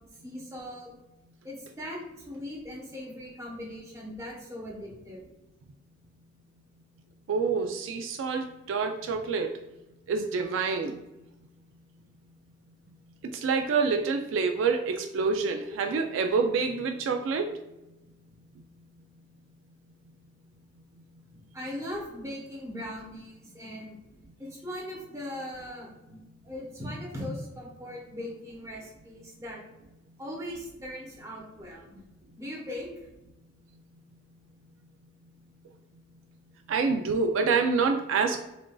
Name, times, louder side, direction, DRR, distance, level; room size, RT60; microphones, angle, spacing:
voice 1, 0.2-0.9 1.4-5.2 15.6-15.8 21.5-23.9 24.4-29.6 30.2-31.9 32.3-32.9, left 1 dB, 15° right, -3 dB, 1.0 m, -39 dB
voice 2, 7.3-9.6 10.1-11.0 13.2-17.6 36.7-38.4, right 5 dB, 80° right, 4 dB, 0.3 m, -27 dB
6.7 x 2.5 x 2.2 m, 0.96 s
head